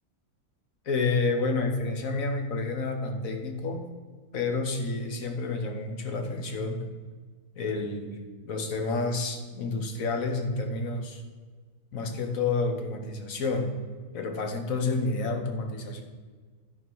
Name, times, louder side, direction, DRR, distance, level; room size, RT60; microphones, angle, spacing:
voice 1, 0.8-3.8 4.3-6.9 7.5-8.2 8.4-11.2 11.9-13.7 14.1-16.0, left 3 dB, 60° left, 4 dB, 1.5 m, -29 dB
12.5 x 4.3 x 6.3 m, 1.5 s
omnidirectional pair, 1.6 m